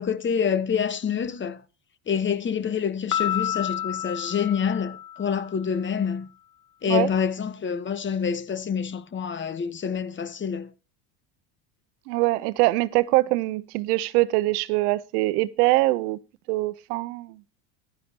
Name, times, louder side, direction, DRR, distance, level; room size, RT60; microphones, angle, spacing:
voice 1, 0.0-1.6 2.1-6.3 6.8-10.7, left 7 dB, 25° left, 1.3 m, -27 dB
Piano, 3.1-5.7, left 11 dB, 50° left, 1.3 m, -30 dB
voice 2, 12.1-16.2 16.5-17.4, right 19 dB, 80° right, 0.9 m, -23 dB
14.5 x 12.0 x 2.9 m
supercardioid pair, 105°, 46 cm